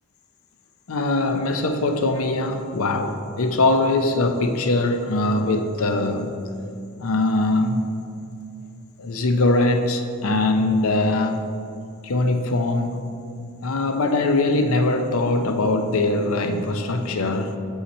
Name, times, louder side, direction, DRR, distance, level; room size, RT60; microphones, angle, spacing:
voice 1, 0.9-6.3 7.0-7.8 9.0-11.4 12.0-13.0 13.6-17.6, left 2 dB, 70° left, 6 dB, 0.6 m, -21 dB
6.5 x 5.6 x 4.2 m, 2.5 s
head